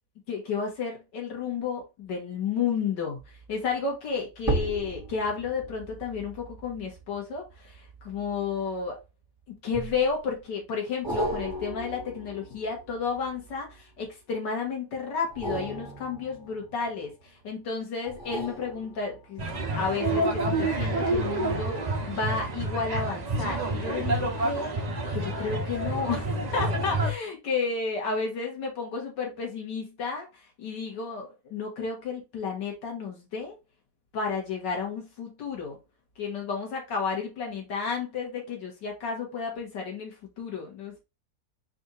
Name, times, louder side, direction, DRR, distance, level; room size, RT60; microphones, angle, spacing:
voice 1, 0.3-9.0 9.5-19.5 19.7-24.7 25.1-26.3 26.5-33.6 34.1-35.8 36.2-41.0, left 5 dB, 75° left, 2.1 m, -32 dB
sound 1, 3.2-3.5 4.4-9.0 9.7-10.4 11.0-14.0 15.2-17.3 18.0-19.5 19.9-20.0, right 1 dB, 15° right, 1.3 m, -36 dB
sound 2, 19.4-27.1, right 2 dB, 45° right, 0.5 m, -28 dB
4.4 x 2.6 x 3.9 m
omnidirectional pair, 1.9 m